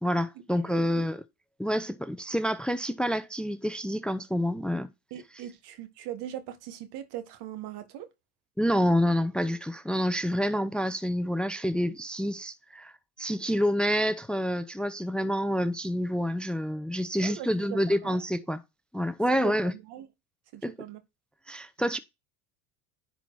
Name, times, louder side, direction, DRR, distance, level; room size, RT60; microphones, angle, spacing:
voice 1, 0.0-1.2 1.6-4.9 8.6-12.9 13.2-18.6 18.9-19.7 20.6-20.7 21.5-22.0, equal, ahead, 0.7 m, -28 dB
voice 2, 5.1-8.1 17.2-18.2 19.4-20.1 20.5-21.0, right 12 dB, 65° right, 1.7 m, -40 dB
10.5 x 4.3 x 4.7 m
supercardioid pair, 90°, 43 cm